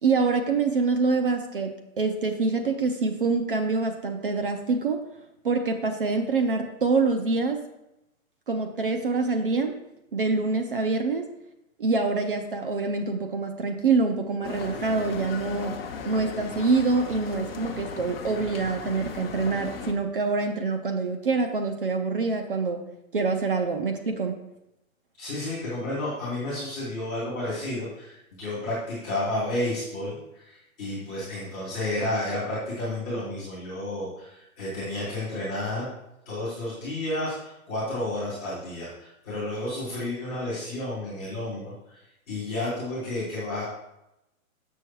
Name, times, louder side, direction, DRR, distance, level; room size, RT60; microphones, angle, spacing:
voice 1, 0.0-5.0 5.4-7.6 8.5-9.7 10.1-11.2 11.8-15.7 16.1-22.8 23.1-24.4, right 4 dB, 40° right, 5 dB, 0.5 m, -25 dB
sound 1, 14.4-19.9, left 5 dB, 45° left, 0.8 m, -37 dB
voice 2, 25.2-35.9 36.3-42.0 42.3-43.6, left 1 dB, 5° left, -11 dB, 0.6 m, -31 dB
6.5 x 6.4 x 4.5 m, 0.88 s
hypercardioid pair, 180°, 42 cm